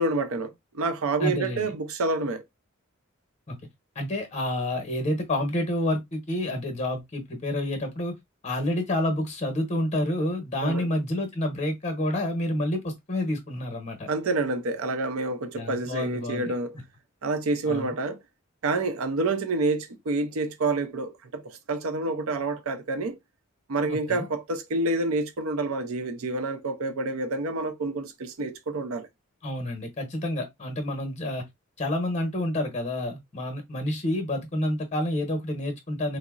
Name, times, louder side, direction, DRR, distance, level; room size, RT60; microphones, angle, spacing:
voice 1, 0.0-2.4 10.6-10.9 14.1-16.8 17.2-18.2 18.6-23.2 23.7-29.1, right 2 dB, 70° right, 0.5 m, -28 dB
voice 2, 1.2-1.7 3.5-3.6 3.9-8.2 8.4-14.1 15.5-16.5 17.7-17.9 23.9-24.3 29.4-31.4 31.8-36.2, left 1 dB, 30° left, 0.8 m, -29 dB
3.8 x 2.0 x 2.3 m
head